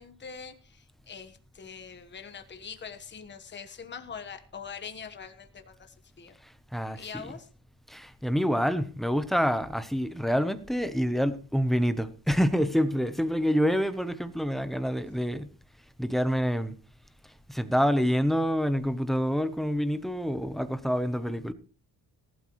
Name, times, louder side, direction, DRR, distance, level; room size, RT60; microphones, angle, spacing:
voice 1, 0.0-6.3 6.9-7.5, left 6 dB, 30° left, 1.3 m, -43 dB
voice 2, 6.4-7.3 7.9-15.5 16.0-16.7 17.5-21.5, equal, ahead, 0.8 m, -27 dB
19.0 x 12.5 x 3.1 m
wide cardioid pair, 175°, 40 cm